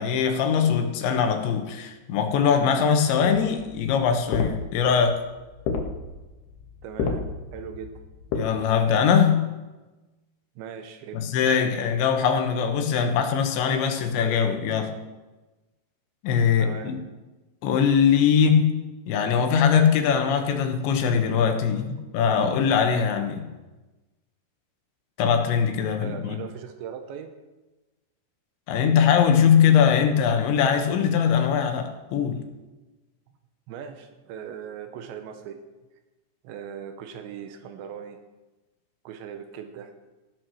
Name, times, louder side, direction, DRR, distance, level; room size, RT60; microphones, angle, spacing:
voice 1, 0.0-5.2 8.3-9.5 11.1-14.9 16.2-17.0 17.6-18.8 19.1-23.5 25.2-26.4 28.7-32.4, left 7 dB, 90° left, 6 dB, 3.5 m, -21 dB
sound 1, 3.5-8.4, left 5 dB, 70° left, 3.3 m, -31 dB
voice 2, 6.8-7.3 7.5-7.9 10.6-11.3 16.6-16.9 26.0-27.4 33.7-35.6 36.4-38.2 39.0-39.9, right 8 dB, 90° right, 7 dB, 3.3 m, -39 dB
16.0 x 9.1 x 6.3 m, 1.1 s
omnidirectional pair, 5.1 m